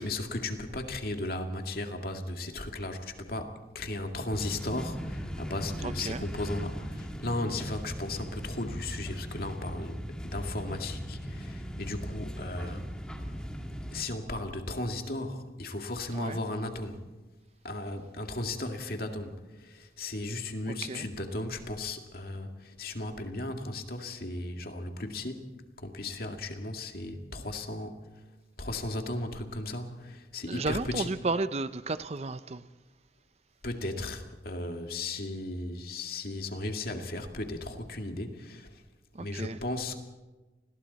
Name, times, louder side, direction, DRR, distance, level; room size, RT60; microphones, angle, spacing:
voice 1, 0.0-12.8 13.9-17.0 17.6-25.4 25.8-28.0 28.6-31.1 33.6-38.7 39.2-40.0, left 2 dB, 55° left, 2.1 m, -36 dB
sound 1, 4.3-14.0, equal, 5° left, 1.7 m, -38 dB
voice 2, 5.8-6.3 16.1-16.4 20.7-21.1 30.5-32.6 39.1-39.6, right 3 dB, 35° right, 0.6 m, -33 dB
29.5 x 21.0 x 4.2 m
head